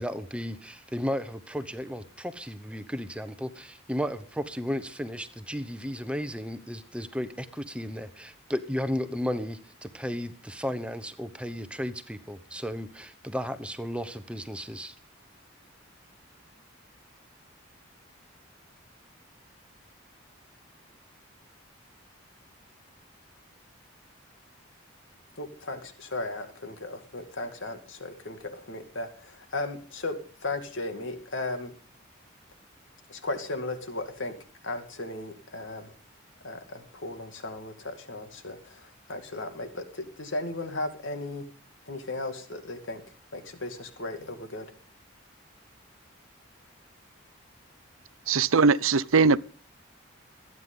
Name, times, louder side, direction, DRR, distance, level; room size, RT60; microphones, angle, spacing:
voice 1, 0.0-15.0, equal, 5° right, 0.9 m, -34 dB
voice 2, 25.4-31.7 33.1-34.3 34.6-35.9 36.4-41.4 41.9-43.0 43.3-44.7, left 2 dB, 65° left, 2.2 m, -36 dB
voice 3, 48.3-49.4, right 4 dB, 85° right, 0.7 m, -20 dB
26.0 x 9.7 x 3.8 m
head